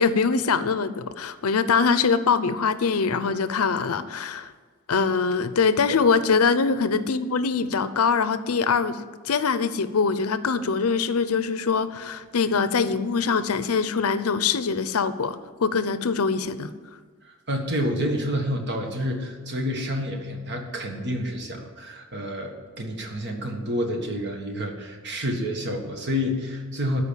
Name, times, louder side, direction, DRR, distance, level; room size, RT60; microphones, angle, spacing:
voice 1, 0.0-4.5 4.9-16.7, left 5 dB, 80° left, 13 dB, 0.6 m, -23 dB
voice 2, 17.3-27.0, equal, 55° right, 3 dB, 1.7 m, -29 dB
13.0 x 5.1 x 8.7 m, 1.5 s
head